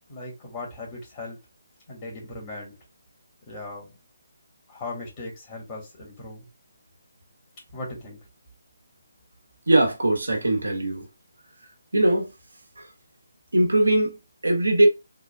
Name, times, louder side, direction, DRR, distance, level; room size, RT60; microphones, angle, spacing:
voice 1, 0.1-1.4 1.9-2.7 3.5-3.9 4.7-6.5 7.7-8.2, left 2 dB, 30° left, 1.7 m, -38 dB
voice 2, 9.7-11.1 11.9-12.3 12.8-12.9 13.5-14.9, right 1 dB, 85° right, 1.1 m, -21 dB
3.7 x 2.3 x 2.3 m
figure-of-eight pair, 145°, 0 cm